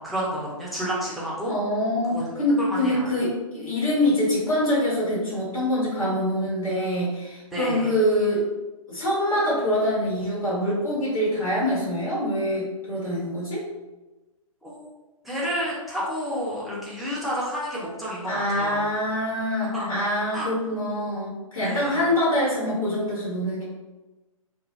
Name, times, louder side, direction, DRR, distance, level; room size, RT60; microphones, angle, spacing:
voice 1, 0.0-1.5 2.1-2.2 2.6-3.0 7.5-7.9 14.6-14.8 15.2-18.8 19.7-19.9 20.3-20.5 21.6-22.1, equal, ahead, -7 dB, 0.5 m, -30 dB
voice 2, 1.5-8.5 8.9-13.7 18.2-23.6, left 1 dB, 75° left, -7 dB, 1.3 m, -25 dB
2.5 x 2.1 x 3.0 m, 1.1 s
figure-of-eight pair, 125°, 18 cm